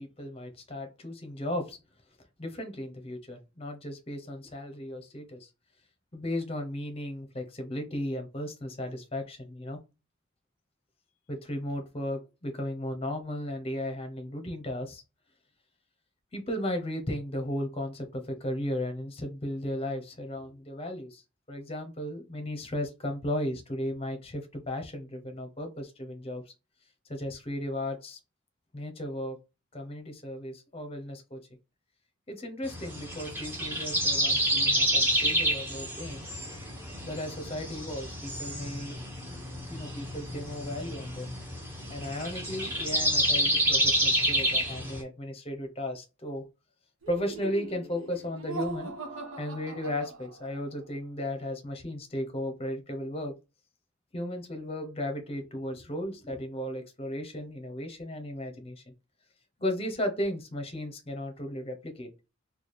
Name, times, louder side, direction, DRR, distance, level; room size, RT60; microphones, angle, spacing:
voice 1, 0.0-1.8 2.4-5.5 6.1-9.8 11.3-15.0 16.3-21.2 21.5-26.4 27.1-28.2 28.7-29.4 29.7-31.4 32.3-36.3 37.0-39.0 39.7-41.3 41.9-46.5 47.1-48.9 49.4-53.3 54.1-58.8 59.6-62.1, left 1 dB, 30° left, 5 dB, 0.7 m, -35 dB
sound 1, 32.6-45.0, right 1 dB, 10° right, 0.9 m, -29 dB
Laughter, 47.0-50.7, right 3 dB, 90° right, 1.0 m, -40 dB
3.2 x 2.3 x 4.1 m, 0.28 s
head